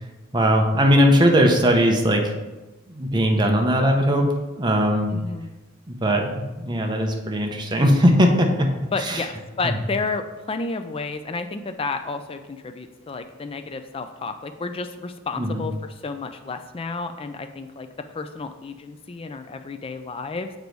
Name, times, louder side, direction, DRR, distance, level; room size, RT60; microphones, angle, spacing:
voice 1, 0.3-2.2 2.9-4.3 4.6-5.1 5.9-6.3 6.6-8.7 9.0-9.3 9.6-9.8 15.4-15.6, equal, 20° right, 2 dB, 0.7 m, -19 dB
voice 2, 5.1-5.5 8.9-20.5, left 4 dB, 25° left, 8 dB, 0.3 m, -31 dB
6.9 x 4.0 x 4.6 m, 1.1 s
head